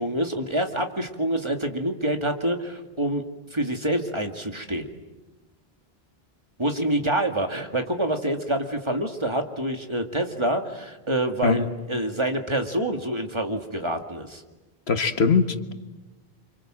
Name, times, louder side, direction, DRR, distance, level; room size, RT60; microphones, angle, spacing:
voice 1, 0.0-3.2 3.5-4.9 6.6-14.4, right 1 dB, 25° right, 4 dB, 2.2 m, -26 dB
voice 2, 14.9-15.7, left 5 dB, 85° left, 8 dB, 1.7 m, -21 dB
30.0 x 26.0 x 7.7 m, 1.1 s
omnidirectional pair, 1.0 m